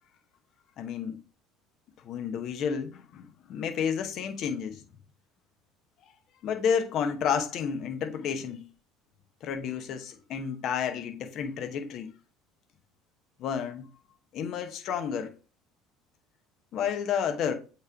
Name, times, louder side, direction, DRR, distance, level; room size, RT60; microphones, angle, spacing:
voice 1, 0.8-1.2 2.0-4.8 6.4-8.7 9.4-12.1 13.4-13.9 14.3-15.3 16.7-17.5, left 7 dB, 55° left, 1.0 m, -31 dB
8.0 x 3.1 x 4.8 m
hypercardioid pair, 75°, 0 cm